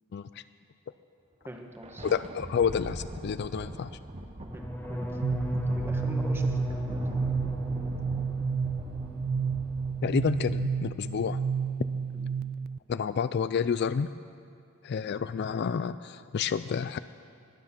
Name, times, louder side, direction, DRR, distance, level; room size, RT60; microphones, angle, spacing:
voice 1, 0.1-0.4 2.0-3.9 10.0-11.4 12.9-14.1 14.8-17.0, left 6 dB, 55° left, 14 dB, 0.3 m, -29 dB
voice 2, 1.4-2.1 4.5-5.1 5.4-7.0 12.1-12.3 14.9-15.1, equal, 10° right, 3 dB, 1.2 m, -44 dB
Thunder, 1.4-12.1, right 1 dB, 30° right, 0.9 m, -42 dB
sound 1, 4.5-10.4 10.7-11.2 11.5-11.9, equal, 10° left, 1.0 m, -35 dB
sound 2, 5.2-12.8, right 6 dB, 45° right, 0.3 m, -31 dB
21.0 x 10.0 x 5.9 m, 2.3 s
head